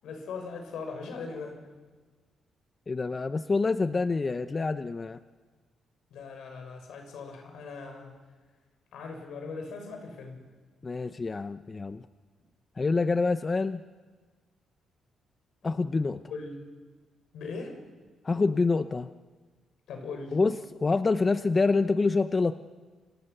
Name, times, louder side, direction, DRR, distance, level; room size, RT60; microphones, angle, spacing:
voice 1, 0.0-1.6 6.1-8.2 8.9-10.4 16.3-16.6 17.3-17.8 19.9-20.4, left 4 dB, 80° left, 4 dB, 6.2 m, -39 dB
voice 2, 2.9-5.2 10.8-12.1 12.8-13.8 15.6-16.2 18.2-19.1 20.3-22.5, left 3 dB, 30° left, 11 dB, 0.8 m, -26 dB
28.0 x 26.5 x 6.8 m, 1.4 s
cardioid pair, 100°, 0 cm